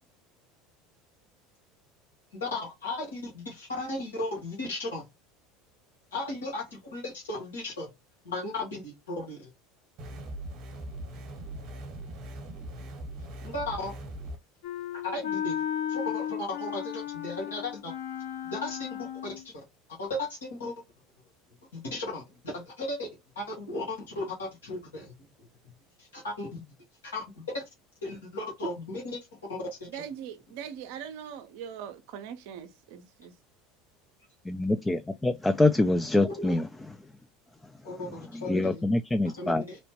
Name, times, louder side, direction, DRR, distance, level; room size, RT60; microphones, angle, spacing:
voice 1, 2.4-5.0 6.1-7.9 8.2-9.5 13.4-13.9 15.0-15.5 15.9-17.9 18.5-19.5 20.0-20.7 21.7-23.1 23.3-25.1 26.0-26.6 27.1-27.6 28.0-29.2 29.5-30.0 36.2-36.5 37.8-38.8 39.4-39.8, left 2 dB, 85° left, 1.2 m, -35 dB
sound 1, 10.0-14.4, right 1 dB, 50° right, 0.9 m, -40 dB
Wind instrument woodwind instrument, 14.6-19.5, left 9 dB, 70° left, 1.4 m, -34 dB
voice 2, 29.9-33.3, right 8 dB, 65° right, 0.5 m, -41 dB
voice 3, 34.5-36.7 38.0-39.6, left 2 dB, 15° left, 0.3 m, -25 dB
3.0 x 2.1 x 2.8 m
hypercardioid pair, 80°, 0 cm